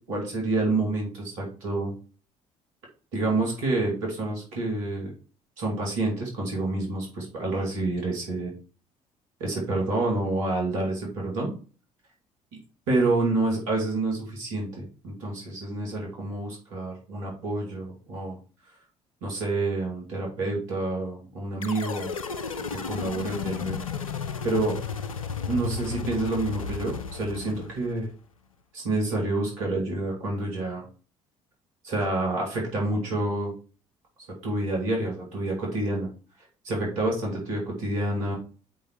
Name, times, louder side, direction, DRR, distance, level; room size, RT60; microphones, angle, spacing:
voice 1, 0.1-1.9 3.1-5.1 5.6-8.5 9.4-11.5 12.9-18.4 19.2-22.1 22.7-23.8 24.4-24.8 25.5-28.1 28.7-30.9 31.8-33.5 34.4-36.1 36.6-38.3, right 2 dB, 75° right, -1 dB, 2.3 m, -28 dB
sound 1, 21.6-28.1, left 6 dB, 90° left, 0.4 m, -34 dB
5.3 x 5.2 x 4.6 m, 0.37 s
figure-of-eight pair, 50°, 17 cm